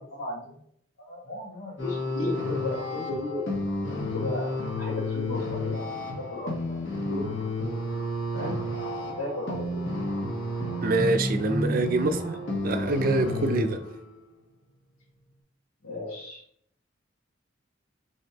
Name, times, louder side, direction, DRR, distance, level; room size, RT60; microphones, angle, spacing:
voice 1, 0.2-0.6 1.0-3.4 4.1-4.5 4.8-5.8 6.2-6.8 7.1-7.4 8.3-8.6 9.2-9.8 15.8-16.4, left 1 dB, 85° left, 1.4 m, -34 dB
sound 1, 1.8-14.2, left 1 dB, 65° left, 1.3 m, -31 dB
voice 2, 10.8-12.4 12.6-13.8, right 2 dB, 45° right, 0.5 m, -25 dB
5.2 x 3.6 x 2.8 m
head